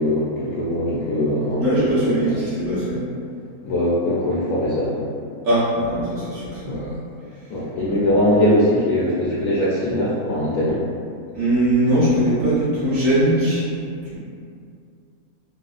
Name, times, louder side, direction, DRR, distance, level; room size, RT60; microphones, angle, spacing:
voice 1, 0.0-2.1 3.6-5.1 6.6-6.8 7.5-10.8, left 1 dB, 75° left, -8 dB, 1.1 m, -21 dB
voice 2, 1.6-3.0 5.4-6.9 7.3-7.5 7.9-8.0 11.3-13.7 14.0-14.1, right 1 dB, 60° right, -11 dB, 1.5 m, -21 dB
4.1 x 2.1 x 2.4 m, 2.4 s
omnidirectional pair, 1.6 m